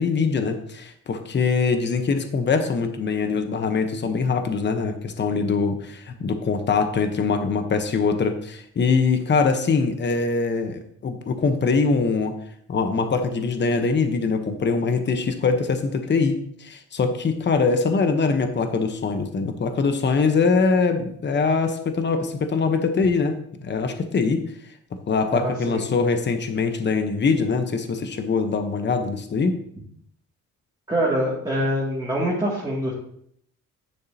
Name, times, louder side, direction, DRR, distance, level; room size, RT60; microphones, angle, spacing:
voice 1, 0.0-12.3 12.7-24.4 25.1-29.6, left 4 dB, 35° left, 7 dB, 1.0 m, -23 dB
voice 2, 25.3-25.8 30.9-32.9, equal, 15° right, -6 dB, 2.4 m, -24 dB
10.0 x 6.6 x 2.9 m, 0.68 s
cardioid pair, 90°, 30 cm